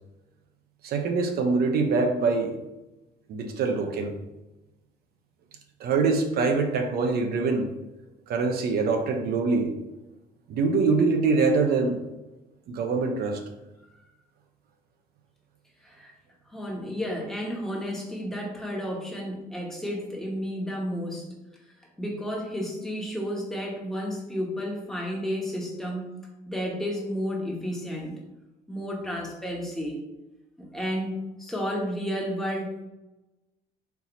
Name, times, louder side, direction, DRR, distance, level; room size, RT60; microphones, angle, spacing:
voice 1, 0.8-2.5 3.3-4.1 5.8-7.7 8.3-9.7 10.5-12.0 12.7-13.4, right 4 dB, 65° right, 5 dB, 0.8 m, -24 dB
voice 2, 16.5-21.3 22.0-26.2 26.5-28.2 28.7-30.0 30.6-32.9, equal, ahead, -2 dB, 1.3 m, -32 dB
4.6 x 2.8 x 4.0 m, 1.0 s
cardioid pair, 110°, 17 cm